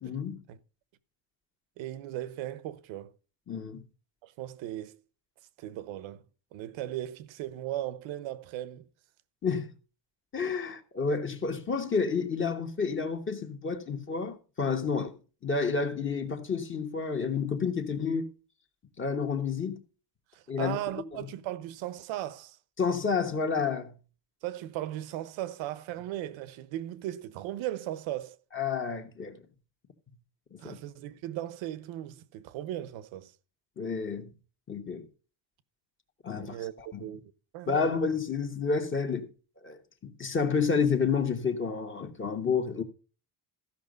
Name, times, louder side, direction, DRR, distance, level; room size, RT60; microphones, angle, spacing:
voice 1, 0.0-0.4 3.5-3.8 9.4-9.7 10.3-15.1 15.4-18.3 19.0-19.8 20.5-20.8 22.8-23.9 28.5-29.4 30.5-30.8 33.8-34.3 34.7-35.1 36.2-37.1 37.7-39.3 39.6-42.8, left 5 dB, 25° left, 1.2 m, -30 dB
voice 2, 1.8-3.1 4.2-5.0 5.6-6.2 6.5-8.9 20.3-22.6 24.4-28.4 30.6-33.3 36.3-36.7 37.0-37.2 37.5-37.9, right 13 dB, 85° right, 1.0 m, -37 dB
14.5 x 5.9 x 5.2 m
cardioid pair, 150°, 45 cm